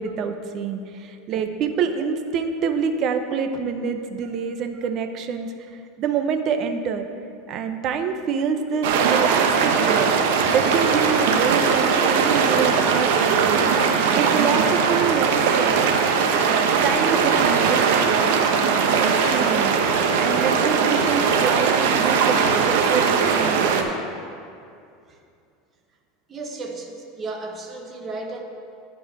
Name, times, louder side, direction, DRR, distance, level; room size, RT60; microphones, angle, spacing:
voice 1, 0.0-5.5 6.0-7.1 7.5-10.1 10.5-15.9 16.4-18.3 18.6-19.7 20.2-23.9, right 6 dB, 40° right, 7 dB, 0.7 m, -26 dB
sound 1, 8.8-23.8, right 6 dB, 75° right, 0.9 m, -20 dB
voice 2, 26.3-28.4, right 3 dB, 25° right, 2 dB, 1.1 m, -34 dB
11.0 x 4.8 x 7.5 m, 2.4 s
supercardioid pair, 145°, 0 cm